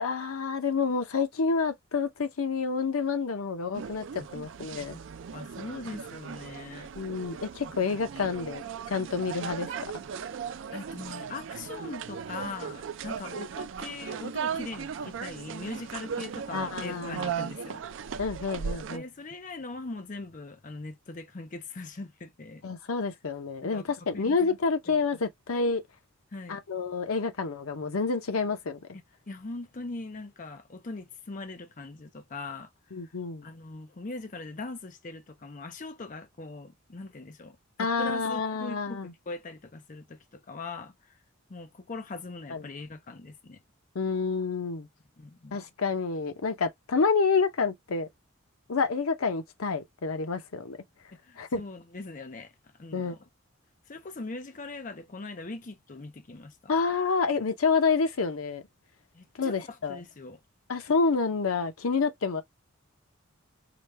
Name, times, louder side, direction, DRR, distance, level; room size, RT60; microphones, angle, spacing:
voice 1, 0.0-4.0 4.3-5.0 7.0-10.0 16.5-17.3 18.2-19.0 22.6-25.8 26.5-28.8 32.9-33.5 37.8-39.1 42.5-42.6 43.9-44.9 45.5-48.1 48.7-50.8 51.4-51.6 52.9-53.2 56.7-58.6 59.4-60.0 60.7-62.4, left 4 dB, 85° left, 0.7 m, -28 dB
sound 1, 3.7-19.0, right 6 dB, 60° right, 0.4 m, -37 dB
voice 2, 5.3-6.9 10.7-17.8 18.9-22.6 23.7-23.8 24.1-24.4 24.9-25.0 26.3-26.6 29.3-32.7 33.0-33.1 33.4-41.2 41.5-43.6 45.2-45.5 51.2-52.5 52.8-53.2 53.9-56.6 59.1-60.4, left 3 dB, 40° left, 0.5 m, -41 dB
5.0 x 2.2 x 3.1 m
head